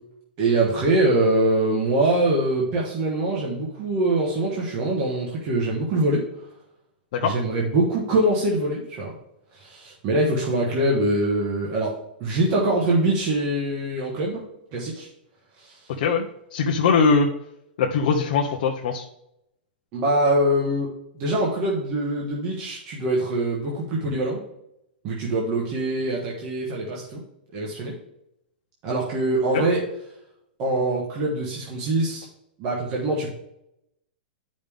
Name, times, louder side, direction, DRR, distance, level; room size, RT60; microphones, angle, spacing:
voice 1, 0.4-6.2 7.2-9.1 9.5-11.9 12.2-14.4 14.7-15.1 15.6-15.8 19.9-24.4 25.0-27.2 27.5-28.0 28.8-29.8 30.6-32.3 32.6-33.3, right 1 dB, 25° right, -3 dB, 1.2 m, -23 dB
voice 2, 16.5-17.3 17.8-19.1 29.5-29.6, left 5 dB, 45° left, 0 dB, 0.7 m, -21 dB
10.5 x 5.2 x 3.5 m, 0.81 s
supercardioid pair, 175°, 5 cm